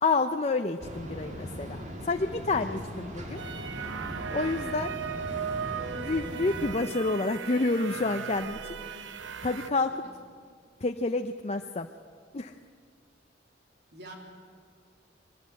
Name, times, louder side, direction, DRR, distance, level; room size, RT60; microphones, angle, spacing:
voice 1, 0.0-3.4 4.3-5.0 5.9-8.6 9.4-9.9 10.8-11.9 12.3-12.5, left 3 dB, 35° left, 6 dB, 0.6 m, -29 dB
sound 1, 0.8-6.7, equal, 40° right, 2.3 m, -39 dB
voice 2, 2.7-3.3 8.4-9.1 9.9-10.0 13.9-14.1, right 1 dB, 60° right, 0 dB, 3.2 m, -49 dB
sound 2, 3.4-9.7, right 7 dB, 75° right, 0.8 m, -37 dB
22.5 x 14.0 x 9.8 m, 2.1 s
head